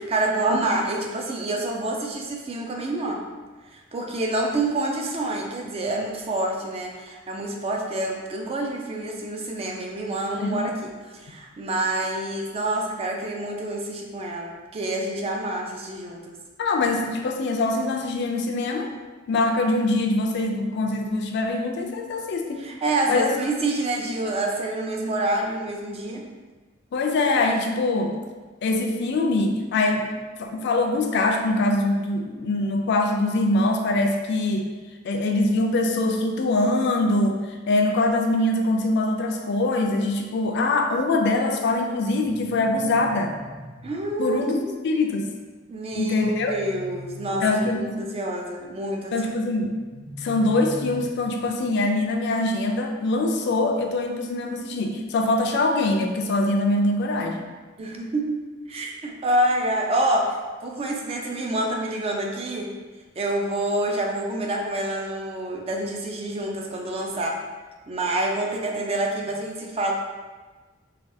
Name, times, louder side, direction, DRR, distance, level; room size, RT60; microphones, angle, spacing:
voice 1, 0.0-3.3 3.7-16.3 22.6-26.3 43.8-44.7 45.7-49.2 57.8-62.7 63.2-67.4 67.9-69.9, right 1 dB, 30° right, 1 dB, 0.4 m, -27 dB
voice 2, 16.6-18.9 19.3-22.7 23.1-23.3 26.9-28.1 28.6-30.1 30.4-34.6 35.0-43.3 44.2-44.6 44.8-45.3 46.0-46.5 47.4-48.0 49.1-49.7 50.2-57.5, left 2 dB, 60° left, 3 dB, 0.4 m, -23 dB
sound 1, 42.2-44.2 45.9-47.9 49.6-51.6, equal, 90° right, 1.0 m, -41 dB
3.3 x 2.3 x 2.6 m, 1.3 s
head